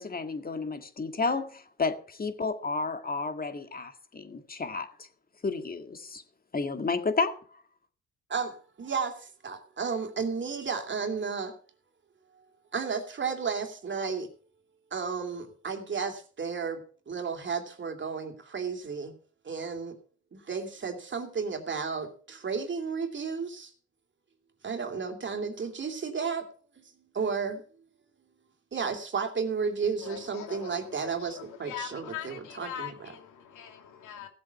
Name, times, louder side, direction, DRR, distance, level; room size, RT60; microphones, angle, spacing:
voice 1, 0.0-5.1 5.4-6.2 6.5-7.4, left 4 dB, 30° left, 1.9 m, -31 dB
voice 2, 8.3-11.5 12.7-14.3 14.9-19.1 19.4-20.0 20.3-23.7 24.6-26.4 26.8-26.9 27.1-27.6 28.7-33.1, right 5 dB, 40° right, 2.8 m, -33 dB
voice 3, 30.0-34.3, left 9 dB, 85° left, 2.4 m, -42 dB
16.0 x 7.7 x 5.8 m
cardioid pair, 90°, 30 cm